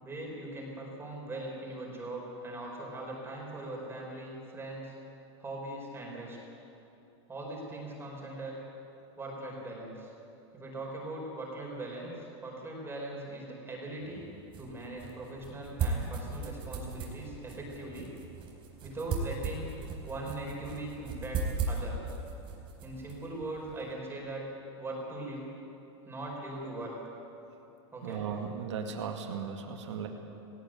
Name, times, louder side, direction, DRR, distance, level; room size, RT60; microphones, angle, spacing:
voice 1, 0.0-4.9 5.4-6.4 7.3-8.6 9.2-10.1 10.5-14.3 14.6-18.1 18.8-19.7 20.1-22.0 22.8-24.4 24.8-25.5 26.0-26.9 27.9-28.3, right 2 dB, 15° right, -2 dB, 5.1 m, -40 dB
sound 1, 14.0-23.9, right 4 dB, 35° right, 4.3 m, -38 dB
voice 2, 28.0-30.1, right 6 dB, 85° right, 3 dB, 2.1 m, -36 dB
18.5 x 17.5 x 9.3 m, 2.9 s
supercardioid pair, 130°, 15 cm